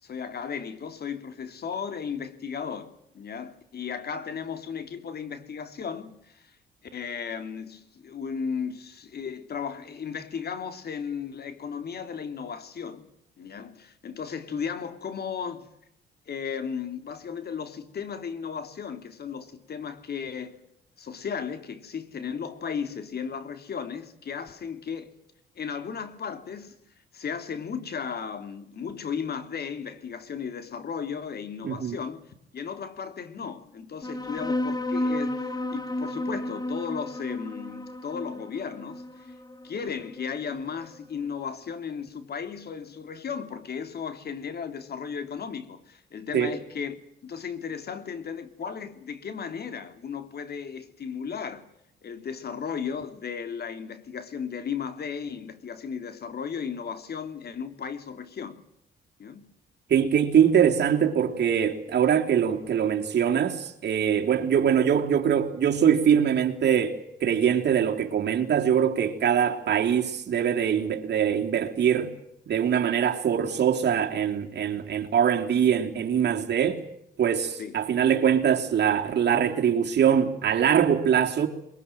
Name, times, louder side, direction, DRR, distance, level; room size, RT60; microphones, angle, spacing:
voice 1, 0.0-6.5 6.9-13.1 13.4-15.7 16.3-20.6 21.0-25.2 25.5-26.8 27.1-39.3 39.6-51.7 52.0-58.6 59.2-59.5 77.6-77.8, left 6 dB, 55° left, 3.0 m, -35 dB
voice 2, 31.6-32.0 46.3-46.5 59.9-66.9 67.2-72.1 72.5-76.8 77.2-81.5, right 8 dB, 60° right, 3.3 m, -23 dB
sound 1, 34.0-41.0, left 1 dB, 20° left, 2.0 m, -32 dB
22.5 x 22.5 x 9.2 m
cardioid pair, 90°, 20 cm